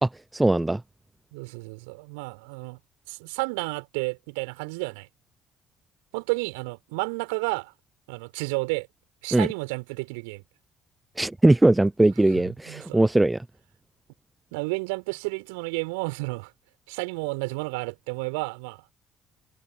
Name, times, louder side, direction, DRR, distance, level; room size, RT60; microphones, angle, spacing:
voice 1, 0.0-0.8 9.3-9.5 11.2-13.4, right 2 dB, 10° right, 0.5 m, -20 dB
voice 2, 1.3-2.8 3.1-5.1 6.1-7.7 8.1-8.9 9.2-10.4 12.3-13.0 14.5-16.5 16.9-18.8, right 30 dB, 70° right, 4.8 m, -31 dB
figure-of-eight pair, 50°, 0 cm